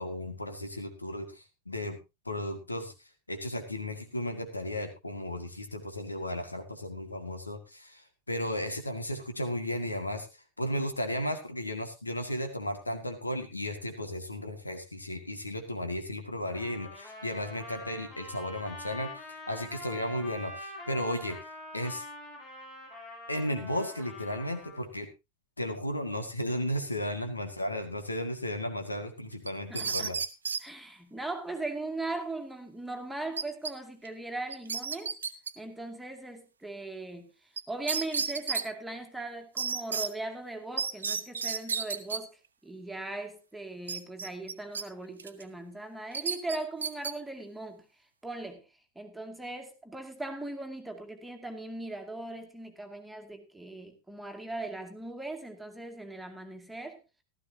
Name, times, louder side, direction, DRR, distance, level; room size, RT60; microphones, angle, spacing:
voice 1, 0.0-2.0 2.3-2.9 3.3-10.3 10.6-21.4 21.7-22.0 23.3-25.1 25.6-30.2, left 1 dB, 80° left, 6 dB, 2.0 m, -34 dB
Trumpet, 16.5-24.8, left 1 dB, 35° left, 6.7 m, -45 dB
sound 1, 29.5-30.6 33.4-33.7 34.0-34.1 34.5-35.5 37.6-37.7 37.9-38.6 39.6-40.1 40.8-42.2 43.9-44.8 45.2-45.4 46.1-47.1, right 5 dB, 70° right, 0.9 m, -32 dB
voice 2, 29.7-30.2 30.6-35.1 35.6-37.3 37.7-47.9 48.2-48.6 49.0-57.0, right 2 dB, 5° right, 4 dB, 2.2 m, -39 dB
15.5 x 13.0 x 2.8 m, 0.25 s
figure-of-eight pair, 90°, 0 cm